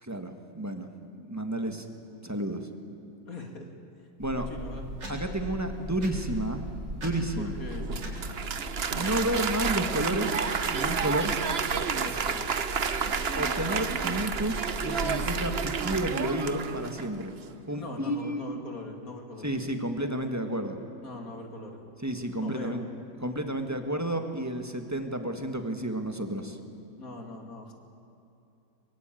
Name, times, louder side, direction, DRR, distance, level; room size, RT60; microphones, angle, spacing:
voice 1, 0.0-1.9 2.2-2.7 4.2-4.5 5.1-6.6 6.9-7.5 8.9-10.4 10.7-11.4 13.4-17.4 17.7-18.6 19.4-20.8 22.0-22.9 23.2-26.6, right 1 dB, 10° right, 6 dB, 1.6 m, -31 dB
voice 2, 3.2-3.7 4.3-4.9 7.4-7.9 12.0-12.4 17.7-19.5 21.0-21.8 22.4-22.8 27.0-27.7, left 2 dB, 50° left, 3 dB, 3.0 m, -41 dB
sound 1, 4.2-16.0, equal, 70° right, 5.0 m, -38 dB
Applause, 7.7-17.2, right 6 dB, 45° right, 1.0 m, -30 dB
23.5 x 22.0 x 9.2 m, 2.8 s
omnidirectional pair, 1.9 m